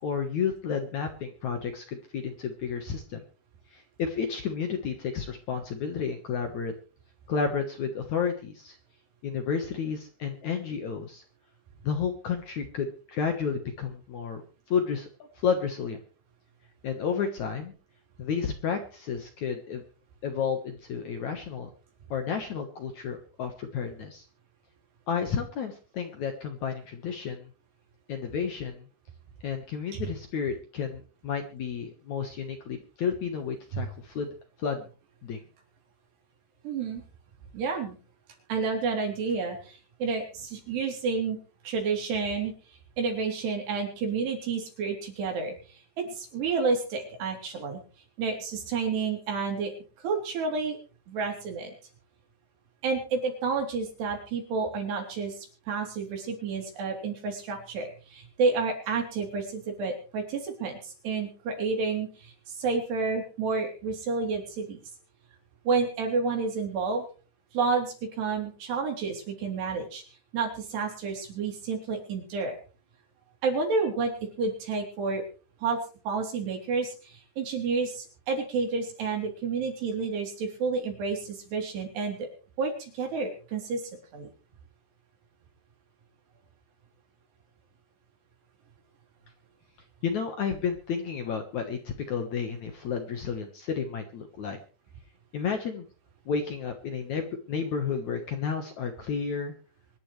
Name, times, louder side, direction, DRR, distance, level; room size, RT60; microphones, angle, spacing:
voice 1, 0.0-3.2 3.7-6.7 7.3-8.8 9.2-11.2 11.8-14.4 14.7-15.1 15.4-16.0 16.8-17.7 18.2-19.8 20.2-21.7 22.1-24.3 25.1-27.5 28.1-28.8 29.4-34.3 34.6-34.9 35.2-35.4 90.0-94.6 95.3-95.9 96.3-99.5, left 6 dB, 60° left, 5 dB, 2.1 m, -31 dB
voice 2, 36.6-37.0 37.5-38.0 38.5-41.4 41.6-42.5 43.0-45.5 46.1-47.8 48.2-49.7 50.0-50.8 51.1-51.7 52.8-64.8 65.7-67.0 67.5-70.0 70.3-72.6 73.4-75.2 75.6-75.8 76.1-82.3 82.6-83.8 84.1-84.3, right 4 dB, 75° right, 2 dB, 5.5 m, -30 dB
24.5 x 11.0 x 3.3 m, 0.37 s
omnidirectional pair, 4.9 m